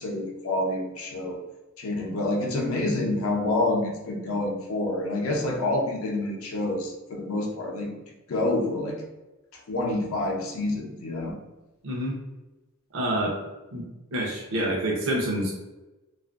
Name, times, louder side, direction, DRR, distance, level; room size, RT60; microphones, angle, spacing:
voice 1, 0.0-1.4 1.8-7.9 8.3-9.0 9.7-11.3, left 2 dB, 70° left, 1 dB, 0.6 m, -27 dB
voice 2, 11.8-12.1 12.9-13.4 13.7-13.9 14.1-15.5, right 1 dB, 60° right, -2 dB, 0.6 m, -27 dB
2.5 x 2.4 x 2.4 m, 1.1 s
head